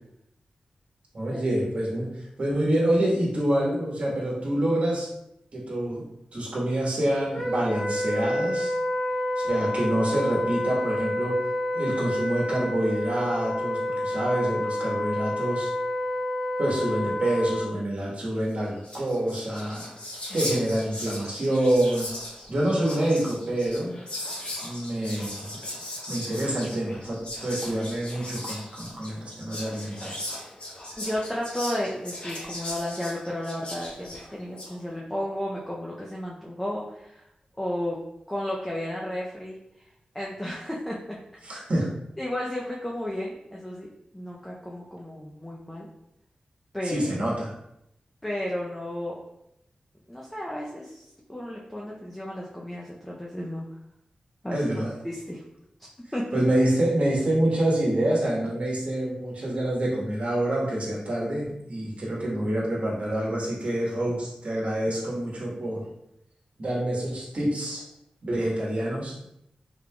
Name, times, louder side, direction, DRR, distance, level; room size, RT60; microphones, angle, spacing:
voice 1, 1.1-2.1 2.4-5.1 5.5-6.0 6.3-8.7 9.4-11.4 11.7-15.7 16.6-19.9 20.3-22.1 22.5-23.9 24.6-25.3 26.1-30.3 41.4-41.9 46.8-47.5 54.5-55.0 56.3-65.8 66.6-67.8 68.2-69.2, right 1 dB, 55° right, -5 dB, 1.2 m, -27 dB
Wind instrument woodwind instrument, 7.3-17.7, left 1 dB, 85° left, 1.2 m, -29 dB
Whispering, 18.5-18.6 18.8-34.7, left 1 dB, 45° left, 0.9 m, -38 dB
voice 2, 31.0-37.2 37.6-38.0 38.3-39.6 40.1-41.2 42.2-43.9 44.1-45.9 46.7-47.0 48.2-49.2 50.1-51.0 51.3-53.6 54.4-54.6 55.0-55.4 56.1-56.4, left 1 dB, 5° left, -4 dB, 0.5 m, -33 dB
3.7 x 3.3 x 2.2 m, 0.81 s
wide cardioid pair, 110°, 3 cm